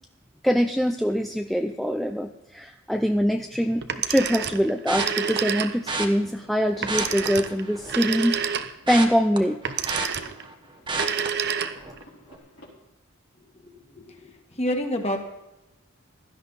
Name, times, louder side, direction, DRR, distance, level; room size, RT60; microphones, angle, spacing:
voice 1, 0.4-8.4 8.9-9.6, equal, ahead, 4 dB, 0.5 m, -23 dB
Telephone, 3.8-6.0 6.8-9.0 9.6-10.4 10.9-12.0, right 7 dB, 50° right, 0.8 m, -29 dB
sound 1, 4.6-12.7, left 1 dB, 70° left, 3.8 m, -51 dB
sound 2, 4.9-5.4 5.9-6.1 6.8-8.0 8.3-10.5 10.9-11.3 11.8-12.0 12.3-12.4, right 3 dB, 25° right, 1.1 m, -30 dB
voice 2, 13.6-15.2, equal, 30° left, 4 dB, 1.8 m, -29 dB
16.0 x 12.5 x 4.1 m, 0.94 s
head